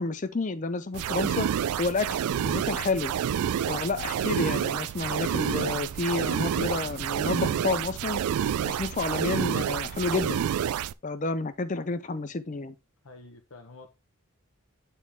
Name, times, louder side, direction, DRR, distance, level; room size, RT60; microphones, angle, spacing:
voice 1, 0.0-1.5 1.8-3.1 3.7-8.2 8.6-10.4 11.0-12.7, left 3 dB, 35° left, 0.5 m, -30 dB
sound 1, 0.9-10.9, right 9 dB, 90° right, 0.3 m, -28 dB
voice 2, 13.0-13.9, left 3 dB, 70° left, 0.9 m, -48 dB
8.8 x 4.3 x 3.5 m
head